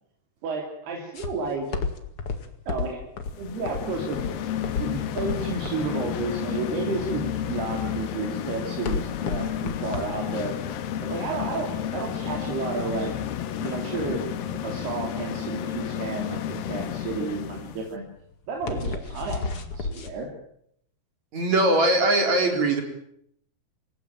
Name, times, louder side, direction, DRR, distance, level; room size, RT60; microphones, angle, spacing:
voice 1, 0.4-1.8 2.7-3.0 3.4-4.2 4.8-10.6 11.0-13.1 13.6-14.2 14.6-18.1 18.5-20.3, right 4 dB, 75° right, 1 dB, 5.2 m, -31 dB
sound 1, 1.1-20.1, left 4 dB, 40° left, 2.4 m, -34 dB
sound 2, 3.3-17.9, left 10 dB, 70° left, 3.0 m, -31 dB
voice 2, 21.3-22.8, right 2 dB, 45° right, 4 dB, 5.0 m, -21 dB
27.0 x 17.0 x 9.1 m, 0.72 s
omnidirectional pair, 4.6 m